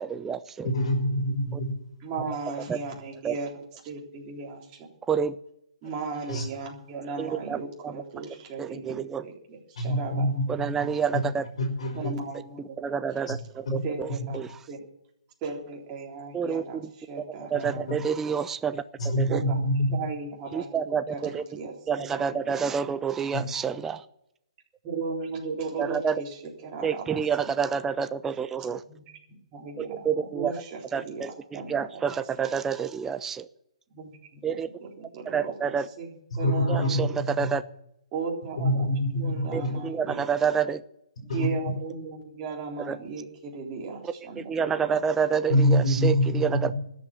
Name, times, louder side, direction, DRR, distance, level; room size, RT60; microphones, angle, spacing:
voice 1, 0.0-0.7 1.5-1.6 2.7-2.8 3.2-3.4 5.1-5.4 7.2-7.6 7.8-7.9 8.6-9.2 10.5-11.5 12.8-13.4 13.7-14.1 14.3-14.5 16.3-16.9 17.5-18.8 19.2-19.4 20.5-21.4 21.9-24.0 25.8-26.1 26.8-28.8 29.8-30.5 30.9-31.3 31.7-33.5 34.4-34.7 35.3-35.9 36.7-37.6 39.5-40.8 42.9-43.0 44.5-46.7, right 7 dB, 10° right, 12 dB, 0.5 m, -28 dB
voice 2, 0.6-1.7 6.3-6.4 9.8-10.4 11.6-12.1 13.3-13.4 13.7-13.8 19.0-20.0 23.3-23.4 36.4-37.0 37.4-37.5 38.6-39.7 41.3-41.5 45.5-46.7, equal, 65° left, 1 dB, 4.9 m, -25 dB
voice 3, 2.0-3.5 3.8-4.9 5.8-10.3 11.9-13.3 13.8-14.8 15.4-18.4 19.3-22.6 22.8-22.9 24.8-27.5 28.8-32.0 33.9-37.2 38.1-38.9 39.1-40.3 41.2-44.9, right 4 dB, 25° right, -1 dB, 3.8 m, -37 dB
13.5 x 8.0 x 9.6 m, 0.76 s
hypercardioid pair, 155°, 4 cm